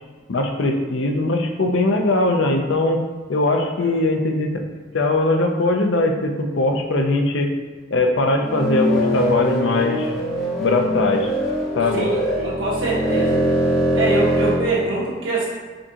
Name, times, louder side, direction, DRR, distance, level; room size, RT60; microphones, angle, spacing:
voice 1, 0.3-3.0 3.3-4.5 4.9-7.5 7.9-10.1 10.6-11.3 11.8-12.1, left 2 dB, 65° left, 3 dB, 0.5 m, -20 dB
sound 1, 8.4-14.6, equal, ahead, 0.8 m, -22 dB
voice 2, 11.9-13.4 13.9-15.5, right 2 dB, 70° right, -6 dB, 1.5 m, -24 dB
5.1 x 3.6 x 2.8 m, 1.4 s
head